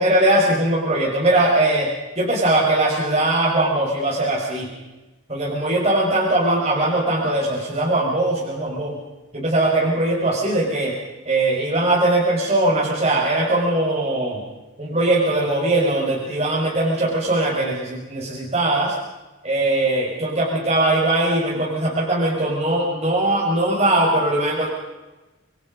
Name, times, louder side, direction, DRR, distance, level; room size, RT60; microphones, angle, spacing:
voice 1, 0.0-1.9 2.2-4.7 5.3-9.0 9.3-10.9 11.3-14.4 14.8-19.0 19.4-24.7, right 1 dB, 30° right, -3 dB, 5.3 m, -20 dB
27.5 x 22.0 x 5.3 m, 1.1 s
head